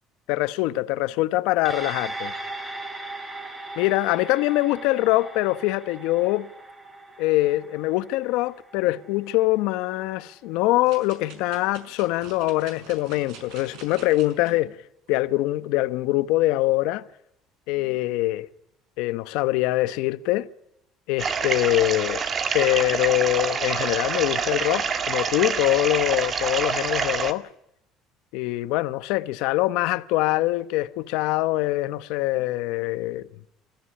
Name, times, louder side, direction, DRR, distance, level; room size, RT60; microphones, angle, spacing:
voice 1, 0.3-2.3 3.8-6.5 7.2-14.8 15.1-17.0 17.7-18.5 19.0-20.5 21.1-22.2 22.5-27.5 28.3-33.3, left 18 dB, 80° left, 1.1 m, -23 dB
sound 1, 1.7-10.3 10.7-10.8, right 2 dB, 15° right, 4.2 m, -38 dB
sound 2, 10.8-14.5 15.1-15.2, right 5 dB, 75° right, 5.6 m, -46 dB
sound 3, 21.2-27.3, right 6 dB, 35° right, 1.9 m, -26 dB
26.5 x 14.5 x 10.0 m
cardioid pair, 135°, 0 cm